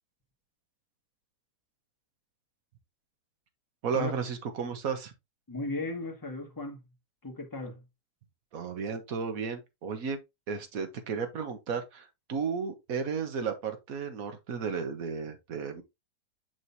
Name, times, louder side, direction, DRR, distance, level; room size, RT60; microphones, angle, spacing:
voice 1, 3.8-5.1 8.5-10.2 10.5-15.8, right 6 dB, 60° right, 1.5 m, -33 dB
voice 2, 5.5-6.8 7.2-7.8, left 2 dB, 15° left, 1.5 m, -36 dB
6.4 x 6.2 x 2.7 m
omnidirectional pair, 1.8 m